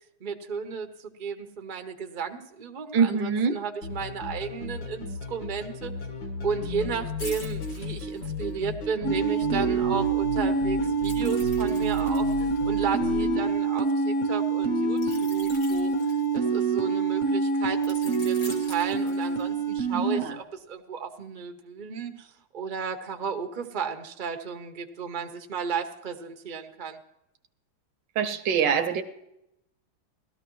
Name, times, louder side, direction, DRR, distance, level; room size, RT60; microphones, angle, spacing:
voice 1, 0.2-5.9 6.4-12.3 12.6-15.9 16.3-27.0, right 6 dB, 50° right, 5 dB, 0.5 m, -34 dB
voice 2, 2.9-3.6 19.9-20.4 28.2-29.0, right 6 dB, 65° right, 9 dB, 1.2 m, -24 dB
sound 1, 3.8-13.4, left 2 dB, 60° left, 2.1 m, -35 dB
sound 2, 7.2-8.7 11.0-13.8 15.0-16.8 17.8-19.7 20.1-20.3, left 2 dB, 75° left, 3.9 m, -45 dB
sound 3, 9.0-20.2, right 4 dB, 45° left, 1.3 m, -26 dB
17.5 x 13.0 x 3.1 m, 0.85 s
omnidirectional pair, 2.3 m